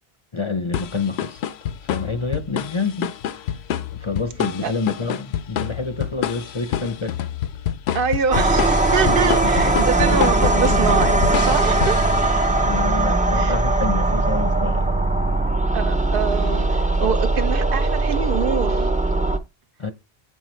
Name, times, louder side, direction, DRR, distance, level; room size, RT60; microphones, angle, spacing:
voice 1, 0.3-1.4 1.9-3.6 3.9-7.2 9.1-9.3 12.6-14.9 19.8-19.9, left 4 dB, 35° left, 0.6 m, -28 dB
sound 1, 0.7-12.7, left 10 dB, 80° left, 0.8 m, -28 dB
voice 2, 7.9-12.0 13.3-13.6 15.7-18.9, right 6 dB, 65° right, 0.8 m, -25 dB
sound 2, 8.3-19.4, right 2 dB, 10° right, 0.4 m, -19 dB
8.1 x 5.5 x 3.1 m
omnidirectional pair, 1.1 m